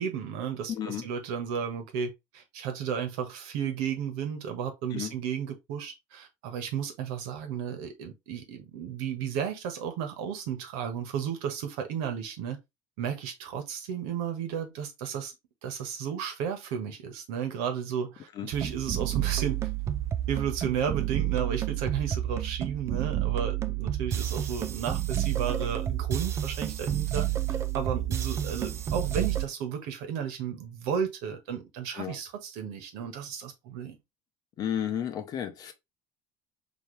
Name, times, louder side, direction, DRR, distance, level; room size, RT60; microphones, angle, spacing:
voice 1, 0.0-12.6 13.0-15.3 15.6-19.6 20.3-34.0, right 7 dB, 85° right, 1.4 m, -33 dB
voice 2, 0.7-1.1 4.9-5.1 18.4-18.5 32.0-32.2 34.6-35.7, left 9 dB, 45° left, 0.9 m, -32 dB
sound 1, 18.5-29.5, right 12 dB, 30° right, 0.4 m, -30 dB
4.4 x 2.9 x 3.2 m
cardioid pair, 135°, 9 cm